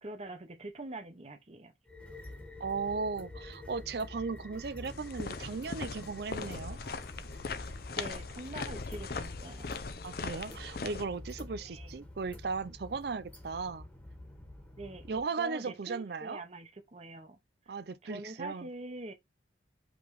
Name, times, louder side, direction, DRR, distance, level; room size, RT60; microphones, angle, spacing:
voice 1, 0.0-1.7 7.9-9.7 11.6-11.9 14.8-17.4 17.7-17.8 18.0-19.1, right 2 dB, 35° right, 0.9 m, -44 dB
Train Ambiance, 1.9-15.2, left 1 dB, 10° left, 1.3 m, -48 dB
voice 2, 2.6-6.8 10.0-13.9 15.1-16.4 17.7-18.7, right 4 dB, 60° right, 0.5 m, -36 dB
sound 1, 4.9-11.1, left 4 dB, 55° left, 0.6 m, -40 dB
5.1 x 3.4 x 3.1 m
head